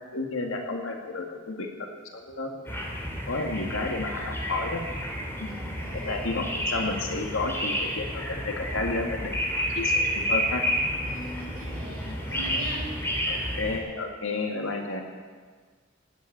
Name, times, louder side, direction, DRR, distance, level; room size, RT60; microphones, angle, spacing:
voice 1, 0.1-2.5 3.3-4.8 5.4-5.5 6.0-9.4 9.8-10.7 13.3-15.0, left 3 dB, 90° left, 2 dB, 2.2 m, -31 dB
sound 1, 2.7-13.8, equal, 10° left, 2.7 m, -30 dB
voice 2, 5.4-6.5 11.0-12.9, right 1 dB, 45° right, -2 dB, 4.8 m, -41 dB
16.0 x 8.3 x 9.3 m, 1.5 s
head